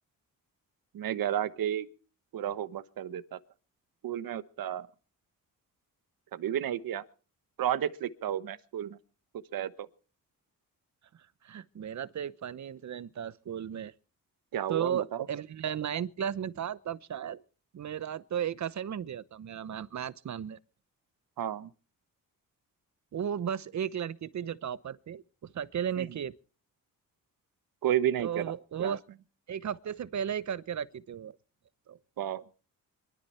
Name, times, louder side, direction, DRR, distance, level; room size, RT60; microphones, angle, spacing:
voice 1, 0.9-1.9 2.3-3.4 4.0-4.9 6.3-7.0 7.6-9.0 9.5-9.9 14.5-15.3 21.4-21.7 26.0-26.1 27.8-28.5 28.8-29.0 32.2-32.4, right 10 dB, 80° right, 1.2 m, -32 dB
voice 2, 11.4-13.9 14.7-17.4 17.7-20.6 23.1-25.2 25.5-26.3 28.2-29.0 29.5-31.4 31.9-32.0, right 9 dB, 55° right, 0.9 m, -35 dB
23.5 x 13.0 x 4.4 m
cardioid pair, 110°, 34 cm